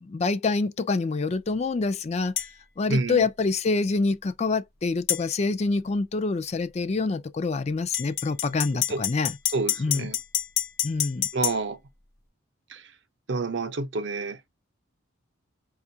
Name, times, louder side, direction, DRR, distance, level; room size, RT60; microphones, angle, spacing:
voice 1, 0.0-2.5 2.8-9.4 9.8-10.1 10.8-11.3, left 3 dB, 35° left, 0.3 m, -26 dB
sound 1, 2.4-2.5 5.1-5.2 7.9-11.6, left 11 dB, 50° left, 0.8 m, -27 dB
voice 2, 2.9-3.3 8.9-9.0 9.5-10.2 11.3-11.8 12.7-12.8 13.3-14.4, right 3 dB, 60° right, 0.6 m, -28 dB
5.1 x 2.4 x 2.7 m
head